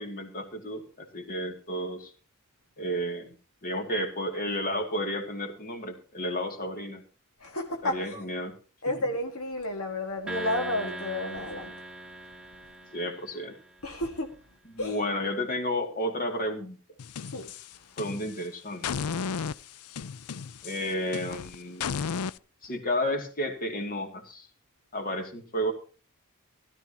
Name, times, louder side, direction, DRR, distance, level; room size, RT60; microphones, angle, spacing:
voice 1, 0.0-2.1 2.8-3.4 3.6-7.0 7.8-8.5 12.9-13.6 14.7-16.8 18.0-19.3 20.6-22.1 22.6-24.5 24.9-25.7, equal, 40° left, 2.5 m, -32 dB
voice 2, 7.4-8.2 8.8-11.7 13.8-14.3 14.8-15.0 17.3-17.5, left 1 dB, 70° left, 1.8 m, -31 dB
sound 1, 10.3-13.7, right 1 dB, 5° right, 1.5 m, -40 dB
sound 2, 17.0-18.4 18.8-22.4, left 6 dB, 90° left, 0.5 m, -34 dB
16.5 x 13.0 x 2.9 m
head